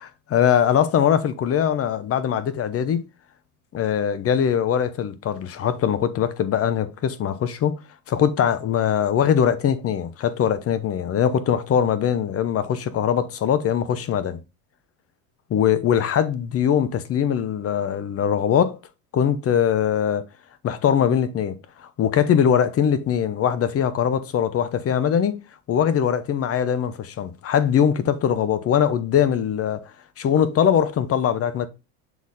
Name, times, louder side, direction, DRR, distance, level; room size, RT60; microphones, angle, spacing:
voice 1, 0.0-3.0 3.7-7.8 8.1-14.4 15.5-18.8 19.1-20.2 20.6-25.4 25.7-29.9 30.2-31.7, left 8 dB, 35° left, 0.9 m, -21 dB
7.1 x 4.2 x 4.1 m
supercardioid pair, 100°, 42 cm